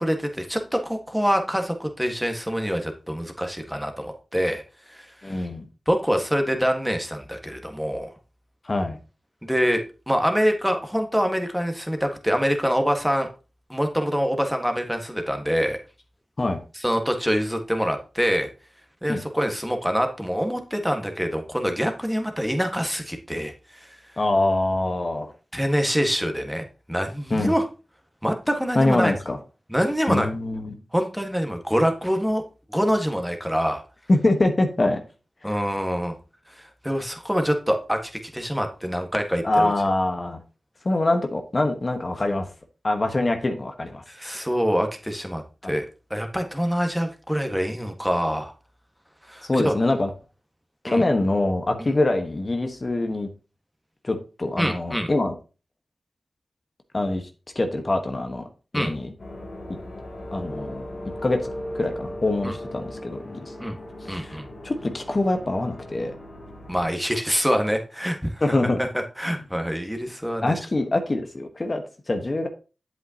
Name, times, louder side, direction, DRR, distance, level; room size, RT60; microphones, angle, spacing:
voice 1, 0.0-4.6 4.9-5.5 5.9-8.1 9.4-13.3 13.7-15.8 16.7-18.5 19.0-23.9 25.5-27.6 28.2-29.1 29.7-30.3 30.9-32.4 32.7-33.8 35.4-36.1 36.6-38.0 38.3-39.7 44.1-48.5 49.3-49.7 50.9-51.0 54.6-55.1 58.7-58.9 62.4-62.5 63.6-63.7 64.1-64.4 66.7-68.4 68.8-70.6, equal, 5° right, 5 dB, 1.5 m, -25 dB
voice 2, 5.2-5.6 8.6-9.0 16.4-16.6 19.1-19.2 24.2-25.3 27.3-27.5 28.7-29.4 30.1-30.8 34.1-35.0 35.4-35.6 39.4-40.4 40.8-42.5 42.8-44.0 45.6-45.7 49.4-50.1 50.8-53.3 54.0-55.3 56.9-57.3 57.5-58.5 58.7-59.1 60.3-60.9 61.2-61.4 61.7-63.5 64.1-64.4 64.6-66.2 68.4-68.8 70.4-72.5, left 2 dB, 45° left, 6 dB, 1.2 m, -24 dB
sound 1, 59.2-66.9, left 1 dB, 70° left, 2.7 m, -37 dB
8.0 x 7.9 x 2.9 m, 0.33 s
cardioid pair, 40°, 0 cm